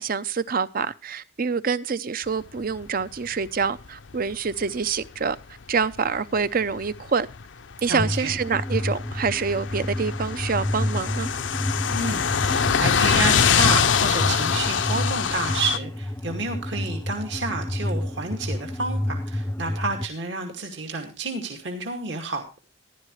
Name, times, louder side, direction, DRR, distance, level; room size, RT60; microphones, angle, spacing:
voice 1, 0.0-5.4 5.7-7.3 7.8-11.3, right 5 dB, 50° right, 0.6 m, -26 dB
sound 1, 2.6-4.3 4.6-4.9 5.3-5.4 5.7-6.0 6.3-7.4 7.7-15.8, left 7 dB, 75° left, 0.6 m, -24 dB
voice 2, 7.9-8.3 11.9-22.5, right 3 dB, 65° right, 2.3 m, -30 dB
sound 2, 8.0-20.1, left 1 dB, 10° left, 0.5 m, -30 dB
15.0 x 11.5 x 3.2 m
head